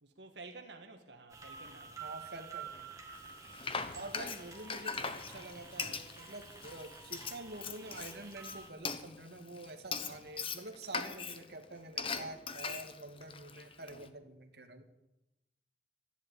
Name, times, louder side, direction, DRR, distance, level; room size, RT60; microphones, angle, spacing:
voice 1, 0.0-2.2, right 3 dB, 85° right, 1.7 m, -52 dB
sound 1, 1.3-8.7, right 6 dB, 20° right, 2.3 m, -50 dB
voice 2, 2.0-3.0 3.9-14.8, right 2 dB, 65° right, 1.9 m, -47 dB
Frying (food), 3.2-14.1, left 5 dB, 30° left, 1.1 m, -41 dB
13.5 x 11.5 x 9.1 m
head